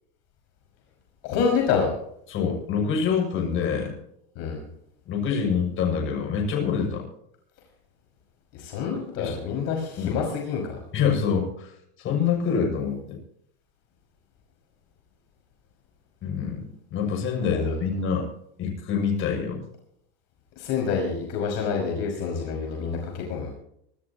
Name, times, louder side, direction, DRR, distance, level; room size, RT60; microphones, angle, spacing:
voice 1, 1.2-1.9 4.4-4.6 8.5-10.8 17.5-17.6 20.6-23.5, left 6 dB, 55° left, 0 dB, 5.8 m, -27 dB
voice 2, 2.3-3.9 5.1-7.1 9.2-9.4 10.0-10.3 10.9-11.7 12.0-13.2 16.2-16.6 16.9-18.3 18.6-19.6, left 6 dB, 40° left, 1 dB, 6.9 m, -26 dB
25.0 x 14.0 x 3.0 m, 0.74 s
supercardioid pair, 130°, 32 cm